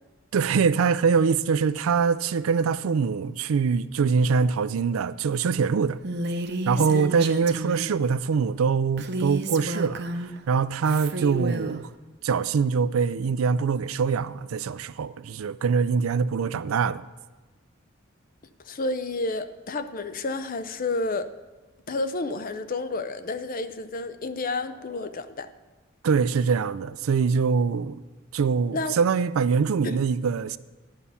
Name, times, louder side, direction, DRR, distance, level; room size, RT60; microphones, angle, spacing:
voice 1, 0.3-6.0 6.7-11.9 12.2-17.0 26.0-28.0 28.3-30.6, right 5 dB, 80° right, 0.4 m, -24 dB
Female speech woman speaking, 6.0-8.0 9.0-10.4 10.8-11.8, right 2 dB, 55° right, 0.7 m, -31 dB
voice 2, 18.6-21.3 21.9-25.5 28.7-29.0 29.8-30.0, left 2 dB, 40° left, 0.5 m, -30 dB
11.5 x 5.6 x 7.1 m
head